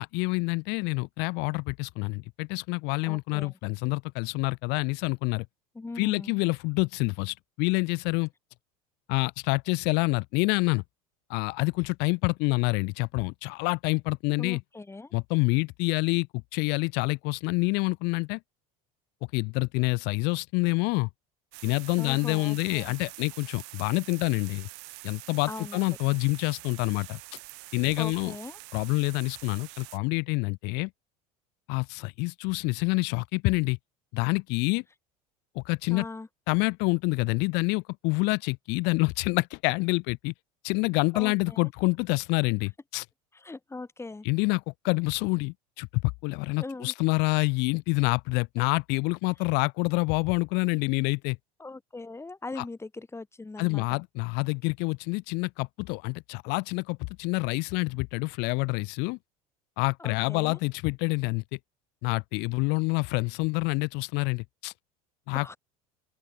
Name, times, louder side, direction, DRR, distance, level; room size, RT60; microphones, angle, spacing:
voice 1, 0.0-5.4 6.0-8.3 9.1-10.8 11.3-14.6 15.1-16.3 16.5-18.4 19.3-21.1 21.6-24.7 25.0-27.2 27.7-28.3 28.7-30.9 31.7-33.8 34.1-34.8 35.5-36.1 36.5-40.3 40.6-43.0 44.2-51.4 52.6-52.7 53.6-59.2 59.8-61.4 62.0-64.7 65.3-65.5, left 29 dB, 65° left, 1.2 m, -27 dB
voice 2, 3.1-3.5 5.7-6.3 14.4-15.1 22.0-22.9 25.5-25.8 28.0-28.6 35.9-36.3 41.1-41.6 43.4-44.3 46.6-46.9 51.6-54.0 60.0-60.6 65.3-65.6, left 3 dB, 15° left, 7.0 m, -40 dB
sound 1, 21.5-30.0, right 30 dB, 65° right, 4.8 m, -46 dB
open air
hypercardioid pair, 90°, 19 cm